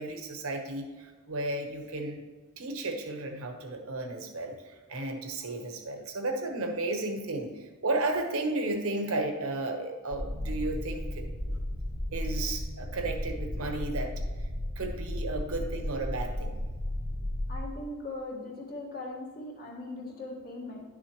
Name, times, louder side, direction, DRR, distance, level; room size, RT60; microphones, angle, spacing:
voice 1, 0.0-2.2 2.6-4.5 4.9-11.6 12.1-14.1 14.8-16.5, right 2 dB, 70° right, 4 dB, 1.1 m, -33 dB
sound 1, 10.1-17.6, left 1 dB, 80° left, 1.9 m, -34 dB
voice 2, 17.5-20.8, left 2 dB, 45° left, -2 dB, 1.7 m, -39 dB
10.5 x 6.2 x 3.0 m, 1.3 s
head